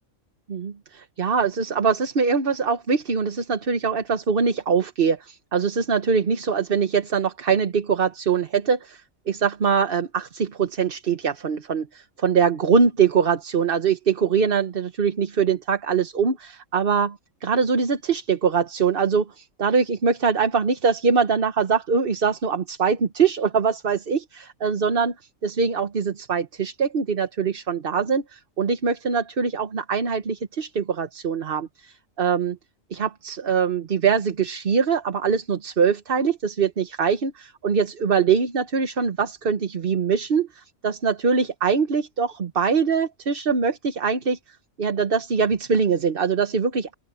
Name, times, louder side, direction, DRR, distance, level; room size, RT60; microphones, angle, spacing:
voice 1, 0.5-17.1 17.4-25.1 25.4-32.6 32.9-44.4 44.8-46.9, right 6 dB, 45° right, 1.2 m, -23 dB
open air
omnidirectional pair, 1.4 m